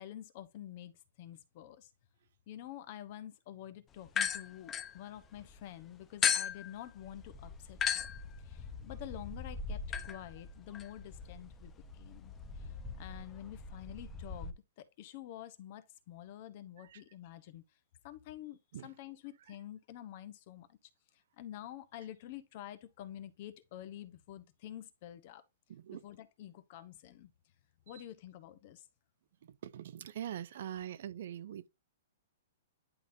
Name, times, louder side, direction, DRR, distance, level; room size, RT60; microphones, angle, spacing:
voice 1, 0.0-1.9 2.5-8.1 8.4-17.6 18.0-20.8 21.4-25.4 26.0-27.3 27.9-28.9, left 12 dB, 40° left, 0.9 m, -48 dB
sound 1, 4.1-5.6 6.2-14.5, left 7 dB, 15° left, 0.6 m, -38 dB
voice 2, 25.7-26.0 29.4-31.7, right 10 dB, 60° right, 0.5 m, -43 dB
11.0 x 3.7 x 2.6 m
hypercardioid pair, 160°, 0 cm